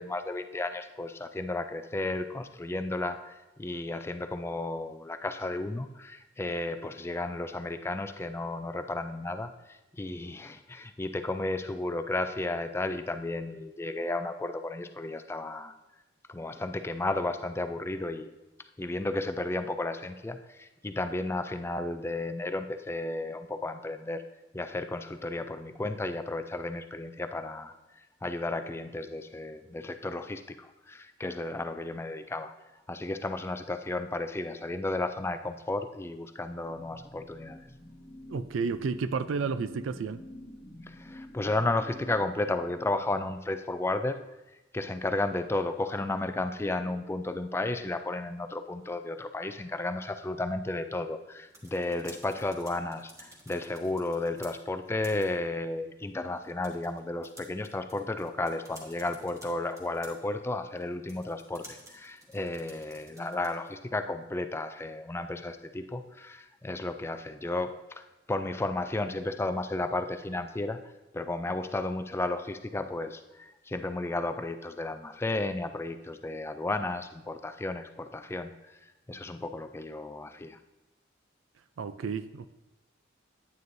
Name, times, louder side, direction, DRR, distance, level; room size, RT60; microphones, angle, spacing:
voice 1, 0.0-15.7 16.3-18.3 18.8-24.2 24.5-27.7 28.2-32.5 32.9-37.6 40.9-44.2 44.7-68.0 68.3-70.8 71.1-78.5 79.1-80.6, left 2 dB, 15° left, 8 dB, 0.3 m, -33 dB
sound 1, 36.5-43.2, left 1 dB, 45° left, 1.4 m, -48 dB
voice 2, 38.3-40.2 81.8-82.5, right 5 dB, 75° right, 13 dB, 0.4 m, -31 dB
sound 2, 51.3-63.8, right 1 dB, 15° right, 1.4 m, -54 dB
9.4 x 9.3 x 2.7 m, 1.0 s
head